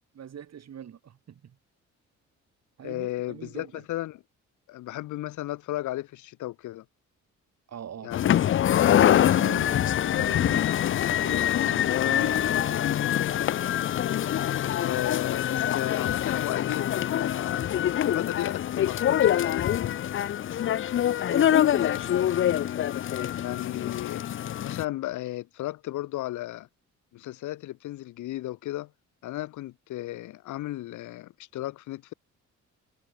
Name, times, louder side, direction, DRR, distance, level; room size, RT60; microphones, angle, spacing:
voice 1, 0.1-1.6 2.8-3.8 7.7-13.0 13.4-13.5 21.3-22.0, right 9 dB, 60° right, 5.7 m, -43 dB
voice 2, 2.8-4.2 4.7-6.8 8.0-8.4 14.8-17.7 18.1-20.0 23.4-24.2 24.6-26.7 27.1-28.9 29.2-32.1, left 16 dB, 75° left, 0.8 m, -34 dB
sound 1, 8.1-24.8, left 11 dB, 45° left, 0.5 m, -25 dB
cardioid pair, 90°, 30 cm